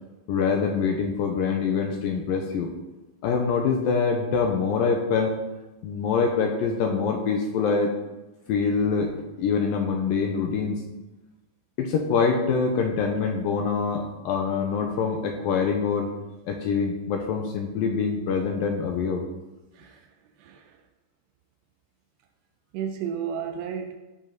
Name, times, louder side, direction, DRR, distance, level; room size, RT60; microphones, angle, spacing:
voice 1, 0.3-2.7 3.2-5.3 5.8-7.9 8.5-10.8 11.8-16.1 16.5-19.2, left 5 dB, 80° left, 3 dB, 2.1 m, -25 dB
voice 2, 19.7-20.1 20.4-20.8 22.7-24.0, right 8 dB, 80° right, 5 dB, 2.7 m, -33 dB
15.5 x 5.5 x 3.9 m, 1.1 s
omnidirectional pair, 4.9 m